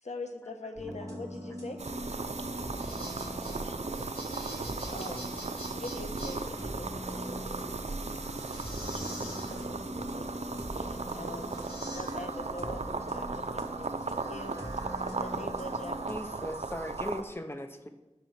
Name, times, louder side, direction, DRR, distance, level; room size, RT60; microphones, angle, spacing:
voice 1, 0.0-2.0 3.6-3.8 4.6-5.2 5.8-7.7 8.9-16.0, left 2 dB, 75° left, 5 dB, 1.1 m, -44 dB
sound 1, 0.8-16.2, equal, 25° right, 1.9 m, -42 dB
sound 2, 1.8-17.2, right 3 dB, 70° right, 0.6 m, -37 dB
granular synthesizer clockwork, 2.5-17.3, equal, 55° left, 3.9 m, -47 dB
voice 2, 3.0-3.1, right 1 dB, 10° right, -5 dB, 3.5 m, -58 dB
voice 3, 16.1-17.9, left 1 dB, 20° left, 6 dB, 1.0 m, -38 dB
10.5 x 5.9 x 5.9 m, 1.1 s
wide cardioid pair, 50°, 12 cm